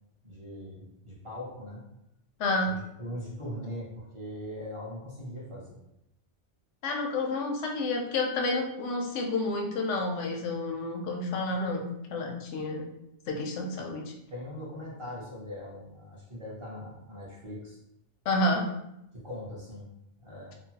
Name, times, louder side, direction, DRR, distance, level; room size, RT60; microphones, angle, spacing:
voice 1, 0.2-1.8 2.6-5.8 14.3-17.8 19.1-19.8 20.2-20.5, left 1 dB, 30° right, -5 dB, 0.8 m, -40 dB
voice 2, 2.4-2.8 6.8-11.8 12.1-12.9 13.3-14.1 18.3-18.7, left 2 dB, 85° left, 2 dB, 0.9 m, -30 dB
2.9 x 2.2 x 2.8 m, 0.82 s
omnidirectional pair, 1.2 m